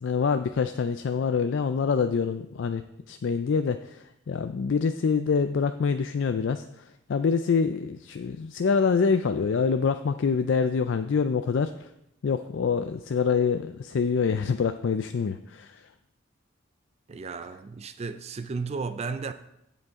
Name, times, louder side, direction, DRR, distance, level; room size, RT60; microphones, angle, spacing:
voice 1, 0.0-6.6 7.1-11.9 12.2-15.8, left 5 dB, 60° left, 0.4 m, -26 dB
voice 2, 17.1-19.3, right 4 dB, 30° right, 0.4 m, -34 dB
15.5 x 5.3 x 3.6 m
head